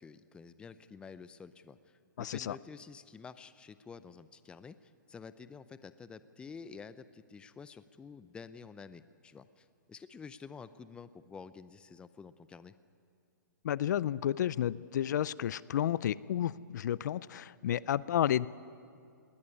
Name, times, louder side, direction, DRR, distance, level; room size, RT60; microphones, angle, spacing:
voice 1, 0.0-12.7, left 5 dB, 10° left, 14 dB, 0.5 m, -50 dB
voice 2, 2.2-2.6 13.6-18.5, left 11 dB, 60° left, 20 dB, 0.5 m, -31 dB
20.5 x 16.0 x 9.7 m, 2.4 s
hypercardioid pair, 140°, 11 cm